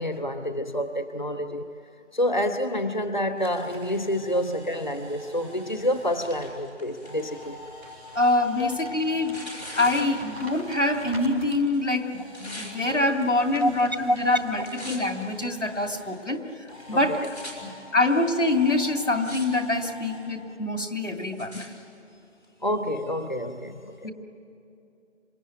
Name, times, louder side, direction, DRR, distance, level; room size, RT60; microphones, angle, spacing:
voice 1, 0.0-1.7 2.1-7.6 8.6-8.7 13.6-13.7 14.1-14.2 14.5-14.6 16.9-17.3 22.6-24.0, equal, 40° left, 8 dB, 0.8 m, -28 dB
Camera, 3.0-11.4 11.7-16.1 16.7-20.2, left 1 dB, 5° right, 7.2 m, -47 dB
Tearing, 5.7-11.1 11.4-12.7 13.5-14.0 14.3-15.2 15.9-16.0 16.7-16.8 17.0-17.5 18.3-18.4 18.9-19.5 19.8-20.2 20.8-21.7 22.4-22.5, equal, 60° left, 6.9 m, -43 dB
voice 2, 8.1-9.4 9.7-16.4 16.9-17.2 17.6-21.7 24.0-24.1, left 2 dB, 85° left, 5 dB, 2.6 m, -25 dB
Crumpling crinkling, 8.5-11.8 12.4-14.6 14.9-15.2, equal, 55° right, 4.8 m, -47 dB
26.5 x 23.0 x 9.2 m, 2.6 s
figure-of-eight pair, 170°, 36 cm